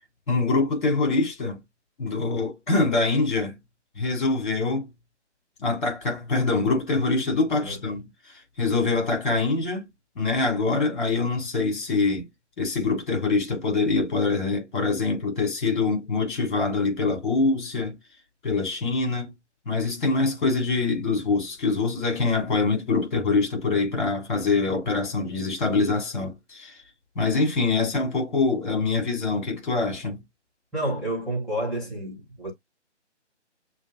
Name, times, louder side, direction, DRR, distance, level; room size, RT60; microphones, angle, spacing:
voice 1, 0.3-1.6 2.0-3.5 4.0-4.9 5.6-8.1 8.6-9.9 10.2-12.3 12.6-18.0 18.4-19.3 19.7-26.7 27.2-30.2, left 3 dB, 45° left, 3.4 m, -24 dB
voice 2, 30.7-32.5, right 1 dB, ahead, 0.8 m, -29 dB
7.1 x 2.6 x 2.5 m
figure-of-eight pair, 150°, 36 cm